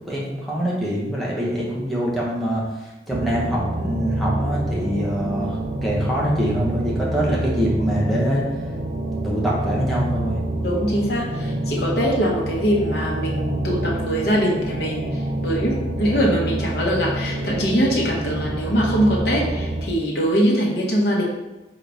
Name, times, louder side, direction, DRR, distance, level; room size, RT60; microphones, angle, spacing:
voice 1, 0.1-2.7 3.1-8.4 9.2-10.4, equal, ahead, -6 dB, 0.9 m, -24 dB
sound 1, 3.1-19.8, right 1 dB, 40° right, 0.5 m, -27 dB
voice 2, 10.6-15.1 15.4-21.2, equal, 60° left, -4 dB, 1.0 m, -22 dB
4.0 x 3.8 x 3.4 m, 1.0 s
head